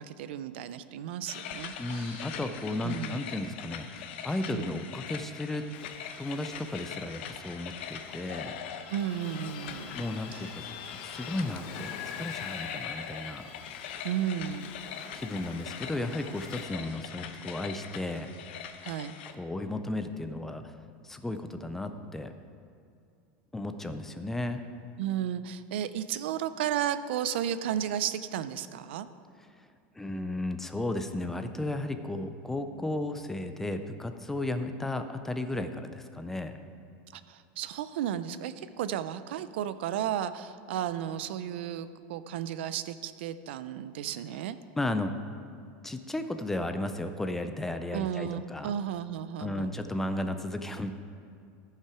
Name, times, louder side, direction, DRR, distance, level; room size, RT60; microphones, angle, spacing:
voice 1, 0.0-2.3 2.8-3.2 4.5-4.7 8.9-9.9 10.3-10.5 14.0-14.8 18.8-19.1 25.0-29.1 37.1-44.6 47.9-49.7, right 10 dB, 80° right, 13 dB, 0.5 m, -33 dB
sound 1, 1.3-19.3, left 8 dB, 85° left, 0.7 m, -42 dB
voice 2, 1.8-5.7 6.2-8.6 10.0-10.7 11.0-13.5 15.1-18.3 19.3-20.8 21.0-22.3 23.5-24.6 30.0-36.6 44.8-45.1 45.8-48.7 49.4-50.9, left 2 dB, 5° left, 8 dB, 0.3 m, -34 dB
Ocean, 5.7-16.7, left 6 dB, 55° left, 0.9 m, -49 dB
14.0 x 5.7 x 4.8 m, 2.3 s
supercardioid pair, 170°, 6 cm